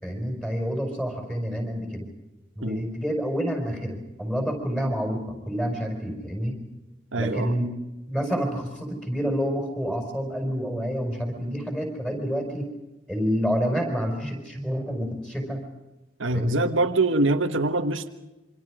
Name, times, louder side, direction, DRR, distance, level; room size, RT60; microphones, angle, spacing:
voice 1, 0.0-2.1 2.6-6.6 7.2-7.7 8.1-12.7 13.1-15.7 16.3-16.6, equal, 5° left, 3 dB, 5.5 m, -28 dB
voice 2, 7.1-7.6 16.2-18.1, right 2 dB, 85° right, 6 dB, 1.5 m, -24 dB
27.0 x 25.5 x 5.1 m, 1.0 s
head